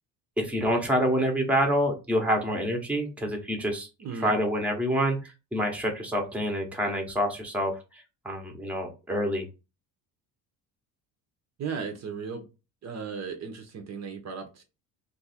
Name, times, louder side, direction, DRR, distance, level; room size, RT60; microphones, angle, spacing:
voice 1, 0.4-3.9 4.2-9.5, equal, 5° right, 2 dB, 0.8 m, -27 dB
voice 2, 4.0-4.3 11.6-12.4 12.8-14.6, right 5 dB, 40° right, 4 dB, 0.7 m, -36 dB
2.6 x 2.5 x 4.1 m, 0.29 s
cardioid pair, 105°, 40 cm